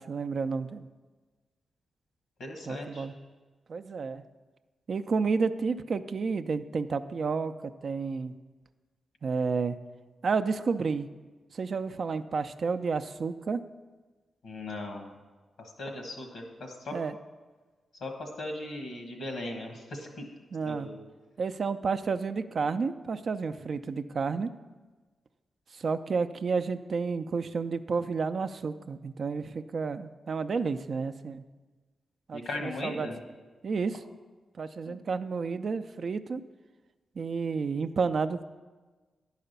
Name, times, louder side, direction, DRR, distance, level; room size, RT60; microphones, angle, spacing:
voice 1, 0.1-0.9 2.7-3.1 3.7-4.2 4.9-8.3 9.2-9.8 10.2-11.1 11.5-13.6 16.9-17.2 20.5-20.9 21.4-24.5 25.7-31.4 32.3-33.1 33.6-34.0 34.6-36.4 37.2-38.4, right 5 dB, 65° right, 10 dB, 0.4 m, -31 dB
voice 2, 2.4-3.1 14.4-15.1 15.8-16.9 18.0-20.3 20.6-21.0 32.3-33.2 34.8-35.0, left 2 dB, 90° left, 2 dB, 1.4 m, -38 dB
10.5 x 4.9 x 6.7 m, 1.3 s
supercardioid pair, 50°, 0 cm